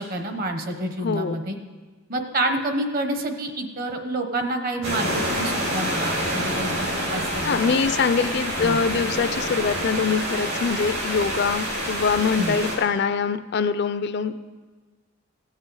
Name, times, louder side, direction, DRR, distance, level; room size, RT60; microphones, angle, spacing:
voice 1, 0.0-1.6 2.1-7.8 8.6-8.8 12.4-12.6, right 1 dB, 45° right, 6 dB, 0.9 m, -28 dB
voice 2, 1.0-1.4 7.4-14.3, left 5 dB, 50° left, 12 dB, 0.4 m, -24 dB
sound 1, 4.8-12.8, equal, 75° right, 3.5 m, -27 dB
16.0 x 7.5 x 4.7 m, 1.4 s
head